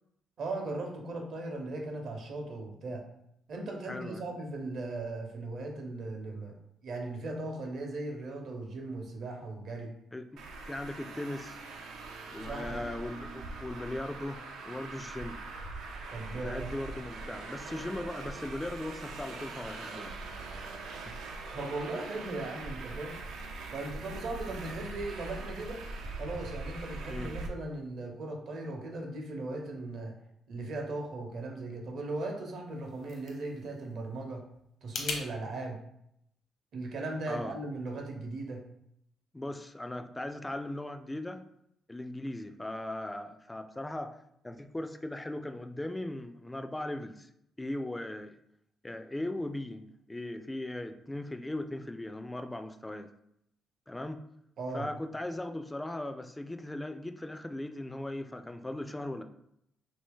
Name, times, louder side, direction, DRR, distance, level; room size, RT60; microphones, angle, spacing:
voice 1, 0.4-3.0 3.5-6.6 6.8-9.9 12.4-12.8 16.1-16.7 21.5-23.2 23.7-25.8 26.2-30.1 30.5-34.4 34.8-35.8 36.7-38.6 54.6-54.9, right 2 dB, 65° right, 2 dB, 0.8 m, -38 dB
voice 2, 3.8-4.3 10.1-11.6 12.3-15.4 16.3-20.2 21.0-21.2 27.1-27.4 37.3-37.6 39.3-41.4 41.9-44.2 44.4-47.3 47.6-48.4 48.8-53.1 53.9-54.2 54.7-59.2, left 1 dB, 10° left, 8 dB, 0.3 m, -38 dB
Traffic noise roadway noise, 10.4-27.5, right 3 dB, 85° right, 0.4 m, -42 dB
sound 1, 32.6-35.2, left 4 dB, 70° left, 0.8 m, -41 dB
2.9 x 2.7 x 3.5 m, 0.76 s
cardioid pair, 90°, 0 cm